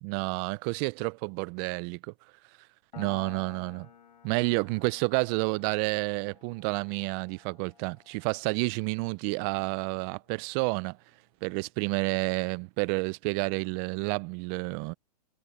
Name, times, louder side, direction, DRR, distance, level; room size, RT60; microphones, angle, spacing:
voice 1, 0.0-2.1 3.0-3.9 4.2-11.0 11.4-14.9, right 29 dB, 40° right, 0.7 m, -30 dB
Piano, 2.9-10.1, left 8 dB, 80° left, 5.6 m, -53 dB
hypercardioid pair, 125°, 21 cm